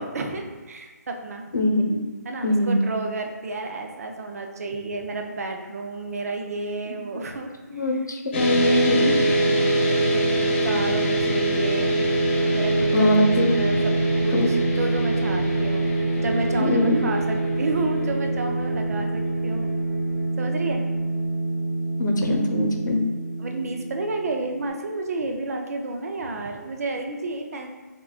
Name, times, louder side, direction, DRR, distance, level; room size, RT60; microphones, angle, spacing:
voice 1, 0.0-1.5 2.2-7.9 9.0-12.0 12.5-15.9 16.2-19.7 20.4-20.8 22.2-22.3 23.4-27.7, right 2 dB, 55° right, 3 dB, 0.6 m, -31 dB
voice 2, 1.5-2.0 2.4-2.8 7.7-9.2 12.9-13.5 14.3-14.5 16.6-17.0 22.0-23.1, left 1 dB, 85° left, 2 dB, 0.8 m, -22 dB
sound 1, 8.3-24.7, right 1 dB, 35° left, 1.0 m, -24 dB
4.7 x 3.7 x 2.4 m, 1.3 s
figure-of-eight pair, 155°, 10 cm